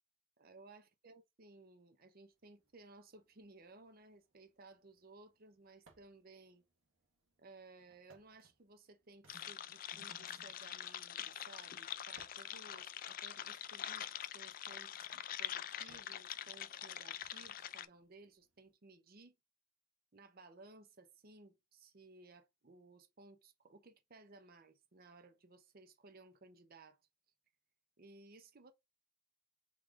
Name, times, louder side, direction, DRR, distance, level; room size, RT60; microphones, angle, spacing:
voice 1, 0.4-6.6 7.4-19.4 20.1-27.0 28.0-28.7, right 3 dB, 45° right, 0.7 m, -59 dB
sound 1, 2.1-18.7, right 3 dB, 80° right, 1.4 m, -74 dB
sound 2, 9.3-17.9, left 10 dB, 45° left, 0.3 m, -45 dB
3.8 x 3.1 x 3.6 m
head